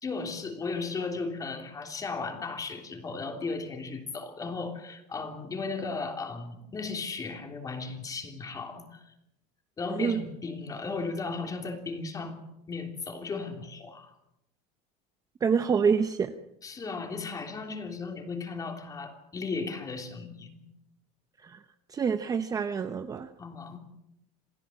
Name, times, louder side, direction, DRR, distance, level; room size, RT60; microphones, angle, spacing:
voice 1, 0.0-9.1 9.8-12.4 12.7-14.1 16.6-20.6 23.4-23.8, left 4 dB, 20° left, 5 dB, 3.3 m, -36 dB
voice 2, 9.9-10.2 15.4-16.3 21.4-21.6 21.9-23.3, right 6 dB, 20° right, 9 dB, 0.8 m, -27 dB
28.0 x 17.0 x 7.7 m, 0.85 s
cardioid pair, 165°, 19 cm